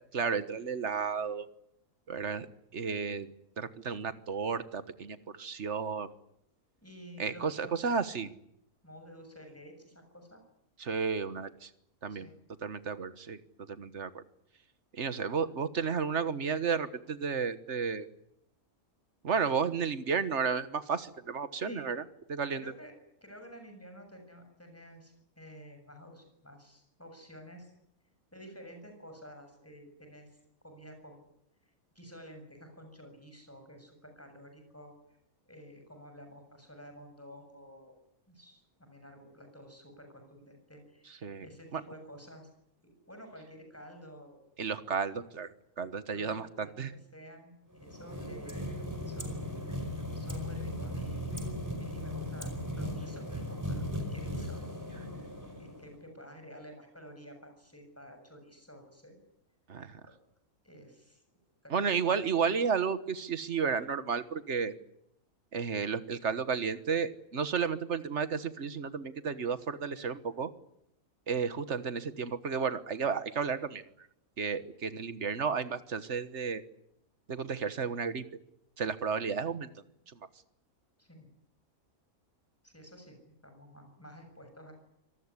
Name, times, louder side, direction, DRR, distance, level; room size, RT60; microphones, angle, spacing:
voice 1, 0.1-1.5 2.1-2.5 2.7-3.3 3.6-6.1 7.2-8.3 10.8-11.7 12.0-12.3 12.6-13.4 13.7-14.2 15.0-18.1 19.2-22.0 22.3-22.6 41.2-41.5 41.7-41.8 44.6-45.5 45.8-46.9 59.7-60.0 61.7-64.7 65.5-70.5 71.3-73.8 74.4-76.6 77.3-78.2 78.8-79.7, right 6 dB, 50° right, 13 dB, 1.6 m, -32 dB
voice 2, 6.8-7.9 8.8-10.4 12.1-12.3 21.7-21.9 22.6-22.9 23.2-27.7 28.3-30.4 30.6-31.2 32.0-35.2 35.5-37.9 38.3-42.5 42.8-44.4 46.1-48.7 49.0-49.5 50.1-51.3 51.7-54.6 55.6-59.2 60.0-60.1 60.6-61.2 61.6-62.0 81.0-81.3 82.6-84.7, equal, 10° left, 5 dB, 7.0 m, -51 dB
sound 1, 47.7-56.0, left 1 dB, 10° right, 4.9 m, -37 dB
25.5 x 19.5 x 9.8 m, 0.77 s
omnidirectional pair, 1.5 m